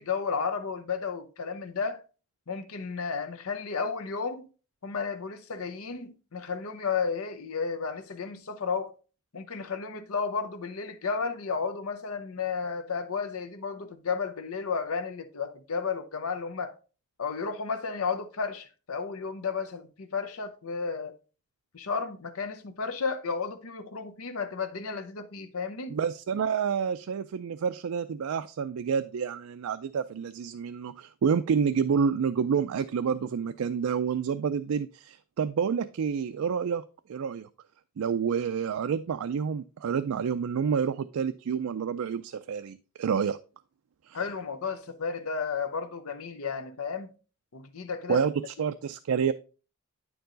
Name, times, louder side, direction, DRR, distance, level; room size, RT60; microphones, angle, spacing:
voice 1, 0.0-2.0 2.5-4.5 4.8-8.9 9.3-16.7 17.2-21.2 21.7-26.0 44.1-47.1 47.5-48.2, left 5 dB, 75° left, 0.8 m, -33 dB
voice 2, 25.9-36.8 37.1-37.5 38.0-43.4 44.0-44.2 48.1-49.3, right 6 dB, 75° right, 0.4 m, -28 dB
9.3 x 4.6 x 3.8 m
head